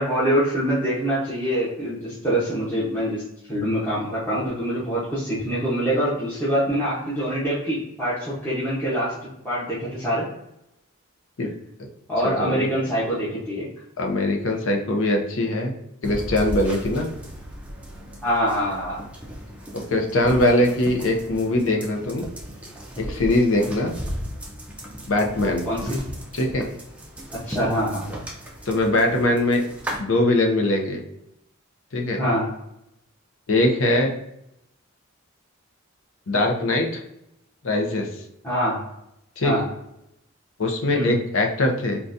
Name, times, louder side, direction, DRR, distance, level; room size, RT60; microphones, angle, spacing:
voice 1, 0.0-3.2 3.5-9.1 9.4-10.3 12.1-13.6 18.2-19.0 25.6-26.0 27.5-28.1 32.2-32.5 38.4-38.8 39.4-39.6 40.9-41.1, equal, 10° left, -10 dB, 0.8 m, -24 dB
voice 2, 12.2-12.7 14.0-15.7 16.0-17.1 19.7-22.3 23.0-23.9 25.1-25.7 26.3-26.7 28.7-29.6 30.0-31.0 31.9-32.2 33.5-34.1 36.3-37.0 37.6-38.1 39.4-39.5 40.6-42.0, left 1 dB, 65° left, 2 dB, 0.6 m, -21 dB
sound 1, 16.0-30.0, equal, 5° right, 0.4 m, -36 dB
3.8 x 2.3 x 2.5 m, 0.82 s
head